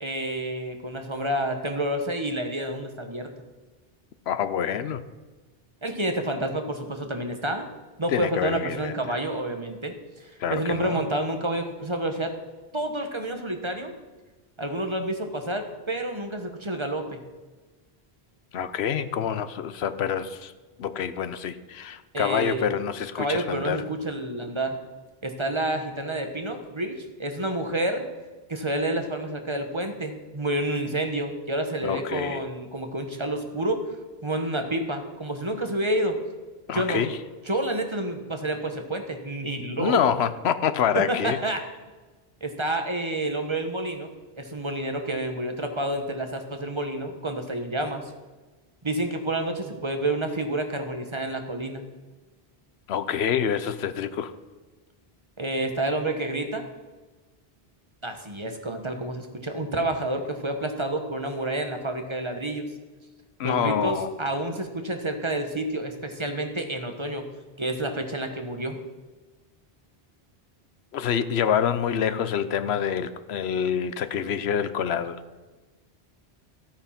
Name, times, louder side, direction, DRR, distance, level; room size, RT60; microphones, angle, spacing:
voice 1, 0.0-3.3 5.8-7.7 8.0-12.3 12.7-13.9 14.6-17.2 22.1-22.8 23.1-24.8 25.2-28.1 28.5-33.8 34.2-36.2 36.7-37.1 37.5-40.0 40.9-41.6 42.4-44.1 44.3-48.1 48.8-51.9 55.4-56.7 58.0-62.7 63.4-67.3 67.6-68.8, right 1 dB, 30° right, 5 dB, 1.3 m, -29 dB
voice 2, 4.3-5.0 8.1-8.9 10.4-11.0 18.5-20.5 20.8-23.8 31.8-32.4 36.7-37.2 39.8-41.4 52.9-54.3 63.4-64.1 70.9-75.2, left 8 dB, 85° left, 12 dB, 1.0 m, -26 dB
13.0 x 8.8 x 5.8 m, 1.2 s
omnidirectional pair, 1.0 m